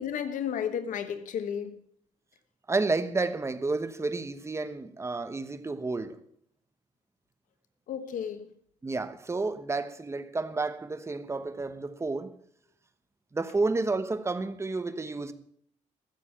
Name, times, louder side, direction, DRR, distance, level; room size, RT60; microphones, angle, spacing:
voice 1, 0.0-1.8 7.9-8.5, left 8 dB, 85° left, 1.2 m, -33 dB
voice 2, 2.7-6.2 8.8-12.3 13.3-15.3, right 3 dB, 20° right, 1.1 m, -31 dB
14.5 x 7.3 x 8.6 m
cardioid pair, 115°, 13 cm